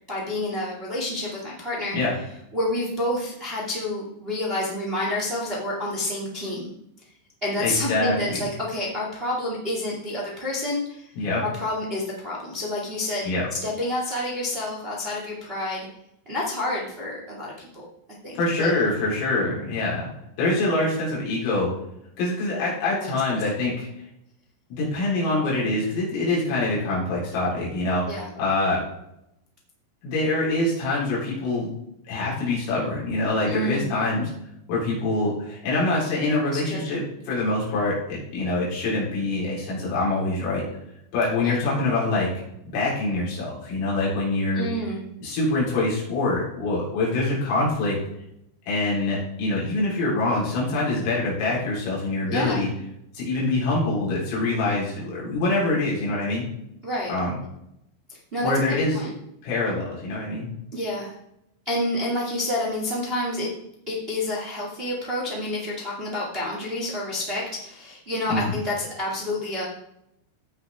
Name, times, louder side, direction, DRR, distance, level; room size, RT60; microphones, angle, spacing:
voice 1, 0.1-2.0 2.5-6.7 7.4-11.1 11.4-13.3 13.6-15.8 16.2-17.8 18.2-18.8 22.9-23.1 28.1-28.3 33.5-33.9 36.5-36.9 41.4-41.5 44.5-45.0 52.3-52.6 56.8-57.1 58.1-59.1 60.7-61.1 61.6-63.5 63.9-69.6, left 1 dB, 40° right, -3 dB, 0.7 m, -29 dB
voice 2, 7.6-8.5 11.2-11.5 13.2-13.5 18.3-20.1 20.4-21.7 22.2-23.9 24.7-28.8 30.0-31.7 32.1-34.3 34.7-40.6 41.1-42.3 42.7-44.7 45.2-48.0 48.7-52.7 53.1-56.4 57.1-57.4 58.4-59.0 59.4-60.5 68.3-68.5, left 2 dB, 80° left, -6 dB, 6.7 m, -25 dB
16.5 x 6.8 x 3.6 m, 0.79 s
omnidirectional pair, 5.8 m